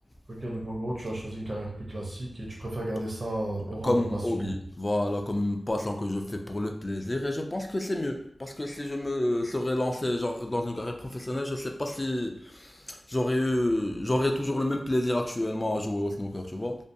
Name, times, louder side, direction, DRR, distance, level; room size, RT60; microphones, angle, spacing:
voice 1, 0.3-4.5, right 1 dB, 35° right, -2 dB, 0.5 m, -34 dB
voice 2, 3.8-16.8, left 1 dB, 25° left, 4 dB, 0.3 m, -29 dB
2.5 x 2.2 x 2.5 m, 0.69 s
wide cardioid pair, 80°, 0 cm